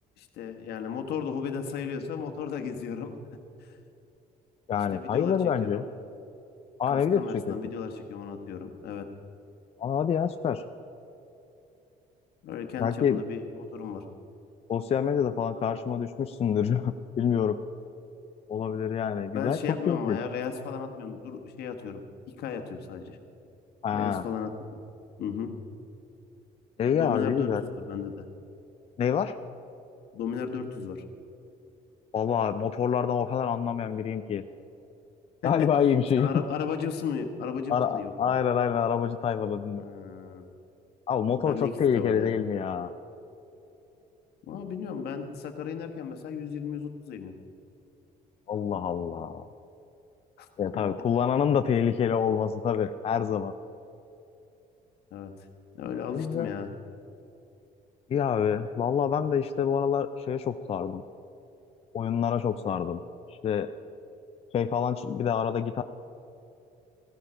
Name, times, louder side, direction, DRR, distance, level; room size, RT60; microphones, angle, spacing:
voice 1, 0.2-3.2 3.6-3.8 4.9-5.8 6.9-9.0 12.4-14.0 19.3-22.0 22.4-23.2 23.9-24.5 25.2-25.5 26.9-28.2 30.1-31.0 35.4-35.7 36.2-38.1 39.8-40.4 41.4-42.3 44.5-47.3 50.4-50.5 50.7-50.8 55.1-55.3 55.7-56.7, left 6 dB, 70° left, 5 dB, 1.4 m, -35 dB
voice 2, 4.7-5.8 6.8-7.6 9.8-10.6 12.8-13.2 14.7-17.6 18.5-20.2 23.8-24.2 26.8-27.6 29.0-29.3 32.1-34.4 35.4-36.3 37.7-39.8 41.1-42.9 48.5-49.4 50.6-53.5 56.1-56.5 58.1-61.0 61.9-63.0 63.3-63.7 64.5-65.8, left 7 dB, 35° left, 9 dB, 0.4 m, -27 dB
15.5 x 13.0 x 5.1 m, 2.8 s
cardioid pair, 110°, 17 cm